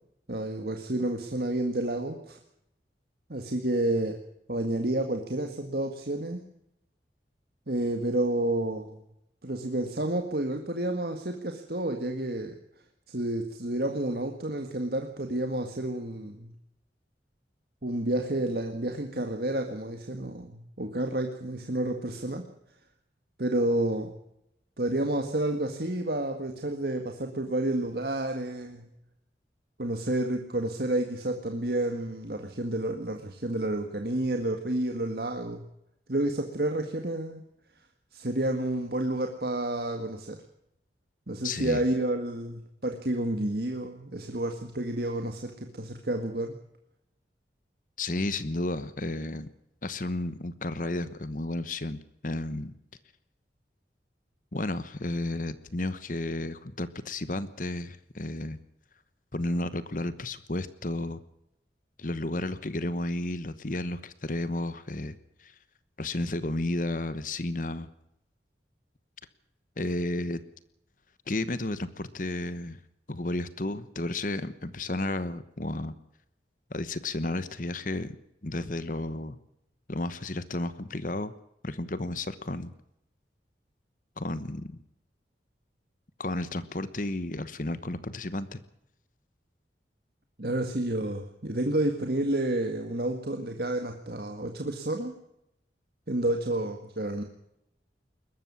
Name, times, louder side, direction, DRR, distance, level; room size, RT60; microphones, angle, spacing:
voice 1, 0.3-2.4 3.3-4.2 4.5-6.4 7.7-9.0 9.4-12.6 13.1-16.5 17.8-22.4 23.4-24.1 24.8-28.9 29.8-35.6 36.1-37.4 38.1-40.4 41.3-46.6 90.4-95.2 96.1-97.2, right 1 dB, 60° right, 5 dB, 1.9 m, -30 dB
voice 2, 41.4-41.8 48.0-49.5 49.8-52.7 54.5-58.6 59.3-61.2 62.0-65.5 66.0-67.9 69.8-70.4 71.3-72.8 73.1-75.9 76.7-78.1 78.4-79.4 79.9-81.3 81.6-82.7 84.2-84.7 86.2-88.6, left 2 dB, 50° left, 14 dB, 1.1 m, -32 dB
21.5 x 13.0 x 9.7 m, 0.80 s
head